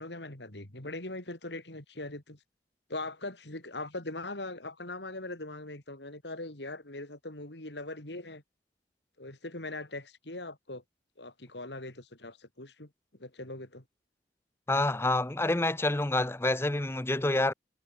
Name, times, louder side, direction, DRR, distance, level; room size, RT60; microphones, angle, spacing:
voice 1, 0.0-2.4 2.9-8.4 9.2-10.8 11.2-12.9 13.2-13.8, left 2 dB, 70° left, 3.9 m, -41 dB
voice 2, 14.7-17.5, left 2 dB, 15° left, 0.6 m, -27 dB
head